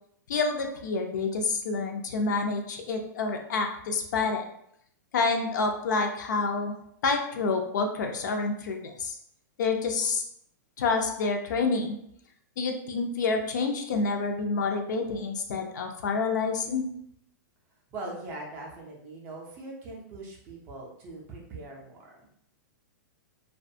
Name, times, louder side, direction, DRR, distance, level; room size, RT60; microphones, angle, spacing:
voice 1, 0.3-4.4 5.1-6.7 7.0-9.2 9.6-10.2 10.8-12.0 12.6-16.9, left 4 dB, 65° left, 4 dB, 0.5 m, -28 dB
voice 2, 17.9-22.3, right 2 dB, 20° right, -2 dB, 0.4 m, -41 dB
2.4 x 2.2 x 2.6 m, 0.71 s
supercardioid pair, 170°, 10 cm